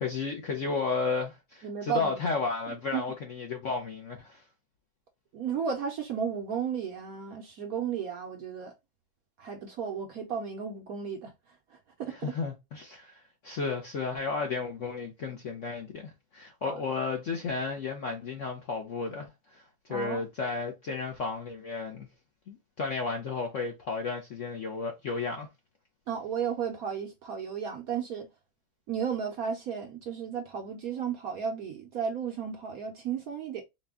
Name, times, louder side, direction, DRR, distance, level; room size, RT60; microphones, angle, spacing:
voice 1, 0.0-4.4 12.2-19.6 19.9-22.1 22.5-25.5, left 4 dB, 60° left, 0.8 m, -33 dB
voice 2, 1.6-2.2 2.7-3.0 5.3-8.7 9.4-11.3 11.7-12.3 16.6-16.8 19.9-20.2 26.1-28.3 28.9-33.6, right 7 dB, 65° right, 0.9 m, -34 dB
4.2 x 2.2 x 3.5 m
omnidirectional pair, 2.1 m